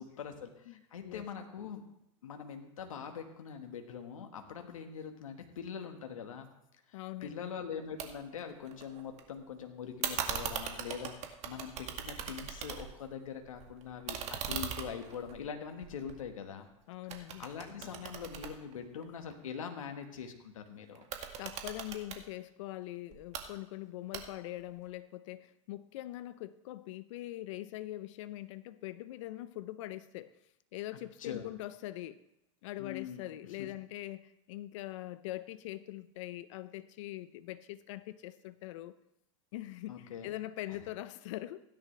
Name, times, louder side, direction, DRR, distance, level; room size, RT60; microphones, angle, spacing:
voice 1, 0.0-1.8 2.2-6.5 6.9-16.7 17.2-21.0 30.9-31.5 32.8-33.3 39.9-40.3 40.7-40.8, left 7 dB, 85° left, 1.5 m, -43 dB
voice 2, 6.9-7.5 16.9-17.5 21.4-30.4 30.7-32.2 32.6-39.0 39.5-41.6, left 15 dB, 70° left, 0.6 m, -42 dB
sound 1, 8.0-8.1 8.4-9.2 10.0-13.1 13.4-16.7 17.1-19.3 20.9-22.2 23.1-23.4 24.1-24.6, right 8 dB, 40° right, 1.9 m, -40 dB
16.5 x 10.5 x 3.3 m
hypercardioid pair, 100°, 17 cm